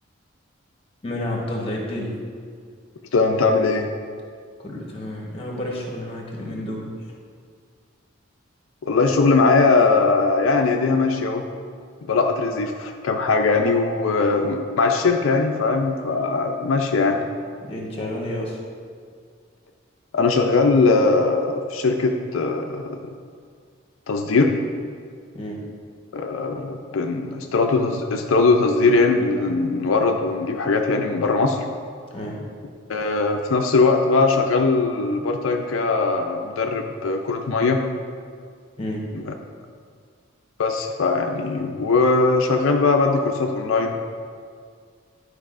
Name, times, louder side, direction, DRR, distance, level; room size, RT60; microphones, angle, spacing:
voice 1, 1.0-2.2 4.6-6.9 17.7-18.6 25.3-25.6 32.1-32.4 38.8-39.0, left 1 dB, 30° left, -1 dB, 1.1 m, -30 dB
voice 2, 3.1-3.9 8.8-11.4 12.1-17.2 20.1-23.1 24.1-24.5 26.1-31.6 32.9-37.8 39.1-39.3 40.6-43.9, left 3 dB, 85° left, 3 dB, 0.5 m, -20 dB
10.5 x 4.9 x 2.5 m, 2.1 s
head